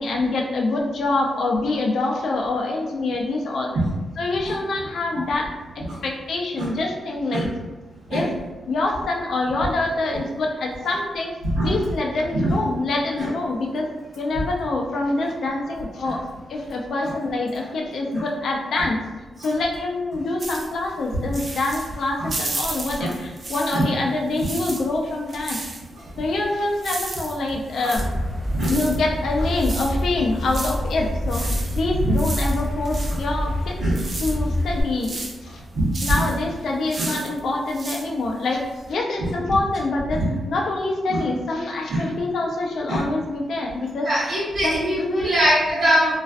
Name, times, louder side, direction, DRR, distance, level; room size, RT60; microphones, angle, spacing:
voice 1, 0.0-3.7 4.2-5.5 6.0-7.5 8.1-8.3 8.7-11.4 11.6-13.9 14.2-16.2 16.5-19.0 19.4-25.6 26.2-28.1 28.7-33.8 34.2-35.6 36.0-44.1 44.6-45.3, left 2 dB, 70° left, 0 dB, 0.4 m, -25 dB
sound 1, 20.4-24.0 24.3-38.9, right 2 dB, 45° right, 0.4 m, -34 dB
sound 2, 28.0-34.8, left 1 dB, 10° left, 0.7 m, -26 dB
voice 2, 35.7-36.2 37.0-37.1 39.2-39.3 40.1-40.3 41.1-41.2 41.9-42.0 42.9-43.1 44.0-46.2, right 1 dB, 70° right, -12 dB, 0.8 m, -23 dB
2.4 x 2.2 x 2.4 m, 1.2 s
cardioid pair, 95°, 0 cm